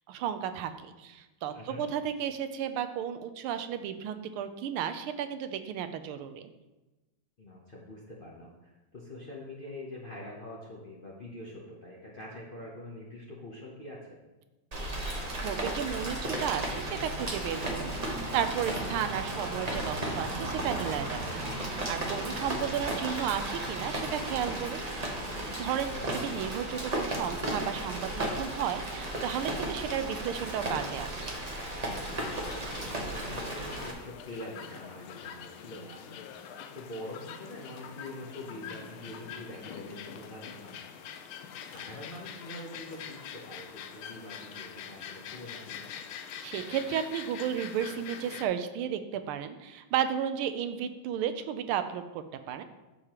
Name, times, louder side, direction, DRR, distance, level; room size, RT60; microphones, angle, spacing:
voice 1, 0.1-6.5 15.4-31.3 46.4-52.6, right 9 dB, 90° right, 10 dB, 1.5 m, -33 dB
voice 2, 1.5-1.8 7.4-14.1 25.9-26.2 32.1-41.1 41.6-45.9, left 1 dB, 55° left, -4 dB, 0.5 m, -45 dB
Rain, 14.7-33.9, right 1 dB, 70° right, 0.3 m, -34 dB
sound 1, 32.0-48.5, left 8 dB, 85° left, 1.4 m, -44 dB
8.3 x 6.6 x 2.9 m, 1.1 s
omnidirectional pair, 2.3 m